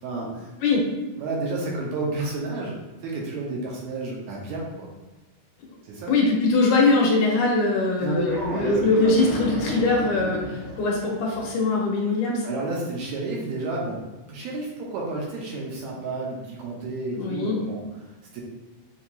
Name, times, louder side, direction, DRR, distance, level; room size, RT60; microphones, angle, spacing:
voice 1, 0.0-0.5 1.2-4.9 5.8-6.1 8.0-9.1 12.4-14.0 14.3-17.8 18.3-18.4, right 2 dB, 75° right, -3 dB, 1.9 m, -31 dB
voice 2, 6.1-12.5 17.2-17.6, left 3 dB, 75° left, -2 dB, 2.2 m, -22 dB
sound 1, 8.2-11.5, equal, 60° right, 2.8 m, -34 dB
7.1 x 2.7 x 2.3 m, 1.2 s
omnidirectional pair, 3.6 m